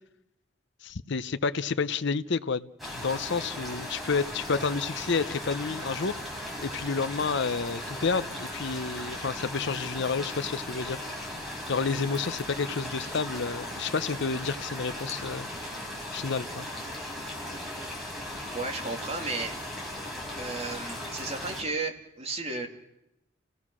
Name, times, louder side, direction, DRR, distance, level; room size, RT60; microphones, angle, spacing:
voice 1, 0.8-2.7 2.9-6.1 6.6-11.0 11.7-15.5 16.1-16.7, left 4 dB, 65° left, 0.7 m, -30 dB
sound 1, 2.8-21.6, left 1 dB, ahead, 5.7 m, -37 dB
voice 2, 18.5-19.5 20.4-22.7, right 3 dB, 35° right, 2.6 m, -33 dB
30.0 x 17.0 x 6.2 m
head